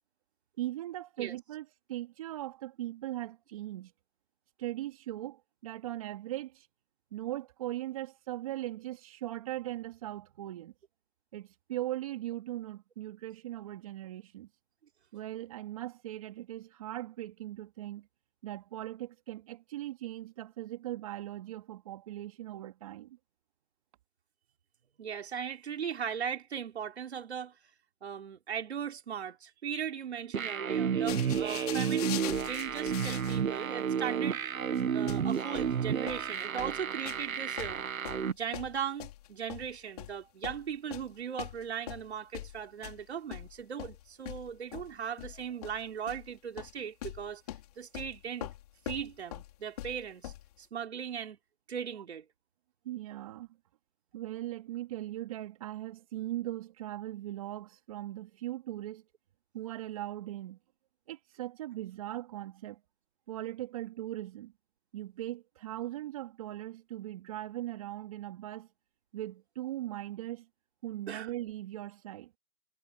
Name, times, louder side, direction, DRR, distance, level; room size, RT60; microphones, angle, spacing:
voice 1, 0.6-3.9 4.6-6.7 7.1-10.7 11.3-14.5 15.1-18.1 18.4-23.2 52.8-53.5 54.1-59.0 59.5-60.6 61.1-62.8 63.3-64.5 64.9-68.7 69.1-70.5 70.8-72.3, right 14 dB, 25° right, 3.4 m, -39 dB
voice 2, 25.0-27.6 28.0-34.4 34.9-37.8 38.3-47.4 47.8-48.5 48.9-51.4 51.7-52.3 71.1-71.3, right 8 dB, 45° right, 3.9 m, -38 dB
sound 1, 30.3-38.3, right 7 dB, 65° right, 1.6 m, -31 dB
sound 2, 31.1-33.5 33.8-33.9 34.8-34.9 35.1-37.3 37.6-40.2 40.4-41.1 41.4-43.0 43.3-46.3 46.6-46.7 47.0-50.5, left 13 dB, 25° left, 5.1 m, -43 dB
hypercardioid pair, 175°, 43 cm